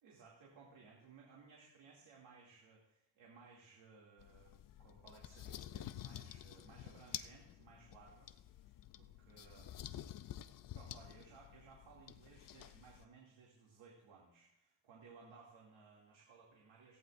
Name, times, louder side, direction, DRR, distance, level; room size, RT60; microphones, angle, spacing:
voice 1, 0.0-8.6 9.0-9.9 10.7-17.0, right 4 dB, 70° right, -3 dB, 2.6 m, -61 dB
sound 1, 4.2-13.0, left 11 dB, 45° left, 0.4 m, -50 dB
17.0 x 15.0 x 2.5 m, 0.81 s
cardioid pair, 160°, 47 cm